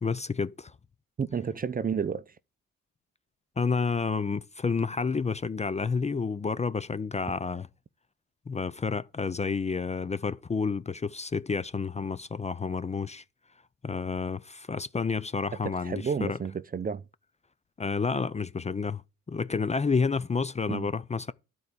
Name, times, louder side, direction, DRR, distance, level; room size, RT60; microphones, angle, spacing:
voice 1, 0.0-0.7 3.6-7.7 8.5-13.2 13.8-16.4 17.8-19.0 19.3-21.3, left 5 dB, 20° left, 0.6 m, -30 dB
voice 2, 1.2-2.3 15.6-17.0 20.7-20.9, right 6 dB, 30° right, 0.7 m, -31 dB
12.0 x 4.7 x 8.4 m
cardioid pair, 90°, 30 cm